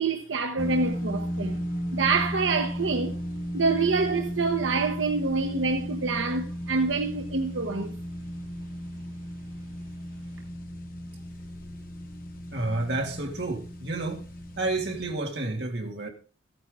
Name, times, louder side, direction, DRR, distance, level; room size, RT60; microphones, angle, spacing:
voice 1, 0.0-1.6 1.9-3.2 3.5-8.0, right 4 dB, 90° right, 0.9 m, -26 dB
sound 1, 0.6-15.1, equal, 50° left, 1.4 m, -35 dB
voice 2, 12.5-14.2 14.6-16.1, right 2 dB, 60° right, 2.2 m, -30 dB
14.0 x 9.2 x 3.7 m
head